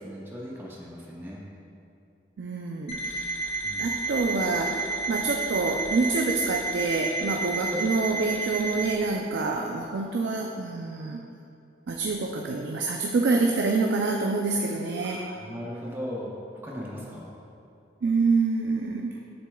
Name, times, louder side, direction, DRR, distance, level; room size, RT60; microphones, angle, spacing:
voice 1, 0.0-1.5 3.6-3.9 7.7-7.8 15.0-17.3, equal, 10° right, -4 dB, 0.7 m, -38 dB
voice 2, 2.4-11.2 11.9-15.2 18.0-19.2, right 3 dB, 90° right, 1 dB, 0.4 m, -27 dB
Alarm, 2.9-8.9, right 3 dB, 35° left, 0.8 m, -31 dB
7.9 x 6.5 x 2.3 m, 2.6 s
head